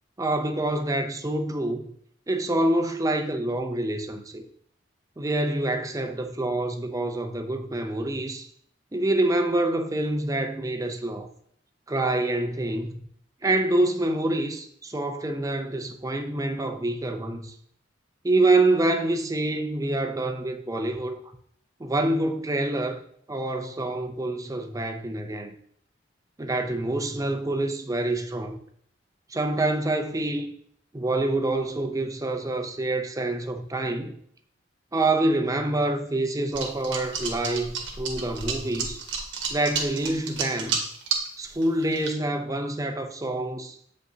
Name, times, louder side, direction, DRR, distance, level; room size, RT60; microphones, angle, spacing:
voice 1, 0.2-1.9 2.3-4.4 5.2-8.5 8.9-11.3 11.9-12.9 13.4-17.5 18.2-21.2 21.8-23.0 23.3-25.5 26.4-28.6 29.3-30.5 30.9-34.1 34.9-39.0 39.5-40.8 41.4-43.8, right 2 dB, 20° right, 0.5 m, -26 dB
sound 1, 36.5-41.3 41.6-42.1, right 6 dB, 70° right, 1.3 m, -30 dB
7.7 x 5.2 x 2.7 m
head